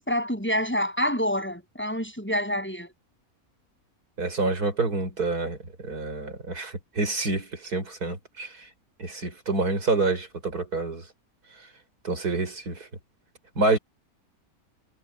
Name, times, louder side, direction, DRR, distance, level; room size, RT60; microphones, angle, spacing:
voice 1, 0.0-2.9, equal, 5° left, 8.0 m, -27 dB
voice 2, 4.2-8.5 9.0-11.0 12.0-12.9 13.6-13.8, right 3 dB, 90° right, 5.4 m, -27 dB
omnidirectional pair, 1.6 m